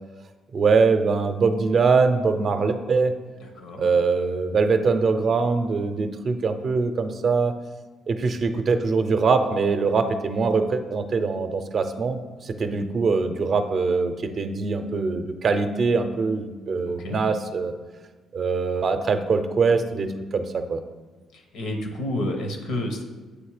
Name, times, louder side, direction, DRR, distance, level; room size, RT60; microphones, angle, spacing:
voice 1, 0.5-3.1 3.8-7.5 8.1-17.7 18.3-20.8, right 4 dB, 50° right, 8 dB, 0.5 m, -23 dB
voice 2, 3.4-3.9 16.9-17.2 21.5-23.0, left 1 dB, 85° left, 4 dB, 1.0 m, -30 dB
8.2 x 2.9 x 4.8 m, 1.3 s
cardioid pair, 90°, 0 cm